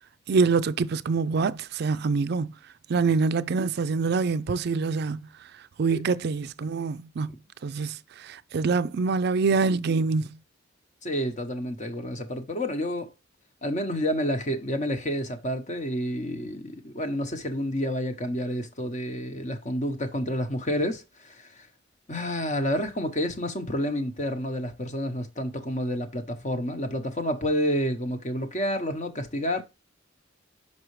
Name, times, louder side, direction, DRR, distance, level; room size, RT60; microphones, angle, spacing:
voice 1, 0.3-2.5 2.9-5.3 5.8-7.3 7.6-10.4, right 4 dB, 55° right, 0.4 m, -25 dB
voice 2, 11.0-13.1 13.6-21.7 22.1-29.6, equal, 35° left, 0.9 m, -29 dB
6.1 x 5.5 x 3.1 m
head